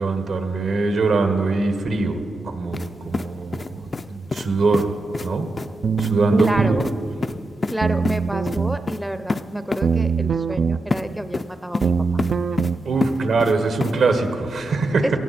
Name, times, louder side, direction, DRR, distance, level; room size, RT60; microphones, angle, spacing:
voice 1, 0.0-2.2 2.4-4.9 5.2-5.5 6.0-6.8 12.8-15.2, right 3 dB, 75° right, 7 dB, 1.4 m, -22 dB
sound 1, 2.7-2.9 3.1-4.1 4.3-4.5 4.7-4.8 5.1-5.3 5.6-5.7 6.0-6.1 6.4-6.5 6.8-6.9 7.2-7.7 8.0-8.2 8.4-8.6 8.9-9.0 9.3-9.4 9.7-9.8 10.9-11.0 11.3-11.9 12.2-12.7 13.0-13.5 13.8-13.9, left 3 dB, 35° left, 0.4 m, -26 dB
sound 2, 5.8-6.8 7.8-8.8 9.8-10.8 11.8-12.8, right 6 dB, 60° right, 0.4 m, -22 dB
voice 2, 6.4-7.0 7.7-12.2 15.0-15.2, right 1 dB, 5° right, 10 dB, 0.6 m, -29 dB
18.0 x 14.0 x 4.3 m, 2.6 s
cardioid pair, 70°, 0 cm